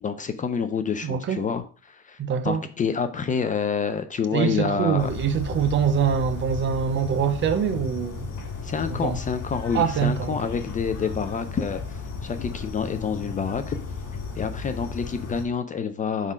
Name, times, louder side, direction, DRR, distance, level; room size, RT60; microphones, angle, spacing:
voice 1, 0.0-2.2 2.4-5.1 8.6-13.8 14.4-16.3, left 6 dB, 25° left, 0.4 m, -28 dB
voice 2, 1.0-1.5 2.2-2.7 4.3-8.3 8.9-9.2 9.7-10.4, right 7 dB, 35° right, 0.7 m, -24 dB
sound 1, 5.0-15.4, left 4 dB, 55° left, 2.8 m, -34 dB
5.4 x 3.8 x 4.8 m
cardioid pair, 115°, 32 cm